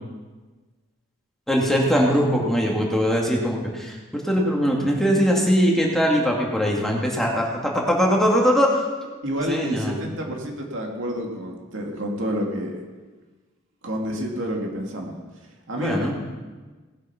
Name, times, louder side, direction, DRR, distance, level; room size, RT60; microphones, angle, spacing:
voice 1, 1.5-8.8 9.5-10.0 15.8-16.1, equal, ahead, -2 dB, 2.1 m, -21 dB
voice 2, 9.2-12.8 13.8-15.2 15.7-16.1, equal, 65° right, 0 dB, 2.5 m, -29 dB
19.0 x 8.2 x 5.8 m, 1.3 s
head